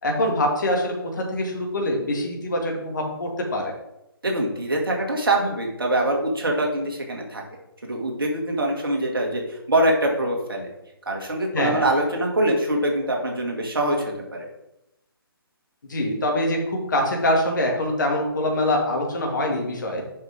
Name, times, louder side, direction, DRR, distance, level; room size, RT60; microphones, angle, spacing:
voice 1, 0.0-3.7 11.5-11.8 15.9-20.0, left 1 dB, 50° left, 1 dB, 2.1 m, -24 dB
voice 2, 4.2-7.4 7.8-10.7 11.1-14.0 14.3-14.5, right 1 dB, 65° right, 0 dB, 2.1 m, -24 dB
7.8 x 5.9 x 3.6 m, 0.87 s
figure-of-eight pair, 140°, 13 cm